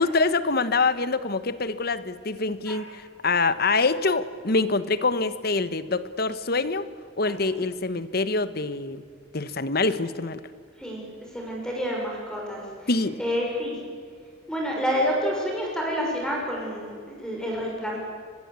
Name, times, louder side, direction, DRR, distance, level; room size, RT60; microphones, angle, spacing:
voice 1, 0.0-6.9 7.2-9.0 9.3-10.4 12.9-13.2, left 3 dB, 50° left, 14 dB, 1.2 m, -25 dB
voice 2, 11.3-12.9 13.2-13.8 14.5-18.0, equal, 5° left, -2 dB, 6.6 m, -28 dB
24.5 x 21.0 x 8.4 m, 2.1 s
head